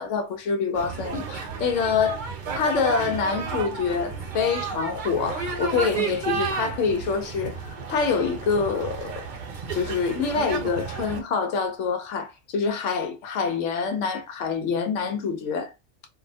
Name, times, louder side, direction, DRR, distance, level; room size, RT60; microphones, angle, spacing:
voice 1, 0.0-9.2 9.7-15.7, left 5 dB, 90° left, 1.0 m, -26 dB
sound 1, 0.7-11.2, right 5 dB, 55° right, 0.6 m, -32 dB
2.5 x 2.0 x 2.7 m
omnidirectional pair, 1.2 m